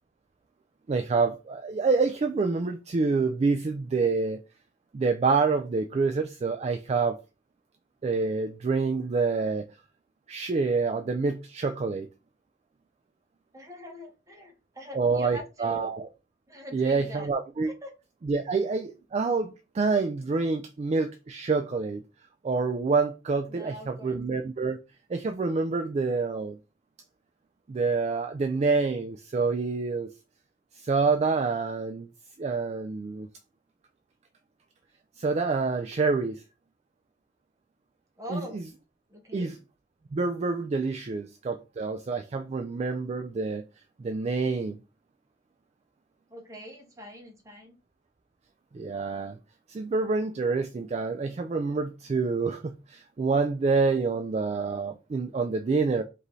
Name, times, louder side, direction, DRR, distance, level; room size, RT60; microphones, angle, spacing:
voice 1, 0.9-4.4 4.9-7.2 8.0-9.7 10.3-12.1 14.9-16.1 16.7-17.7 18.2-22.0 22.4-24.8 25.1-26.6 27.7-30.1 30.8-32.1 32.4-33.3 35.2-36.4 38.3-38.4 39.3-39.6 40.1-43.6 44.0-44.8 48.7-49.4 49.7-52.6 52.9-56.0, right 4 dB, 35° right, 0.3 m, -27 dB
voice 2, 13.5-15.9 16.5-17.3 17.8-17.9 23.5-24.2 38.2-38.6 39.1-39.5 46.3-47.8, equal, 15° right, 1.0 m, -43 dB
5.1 x 2.7 x 3.1 m
head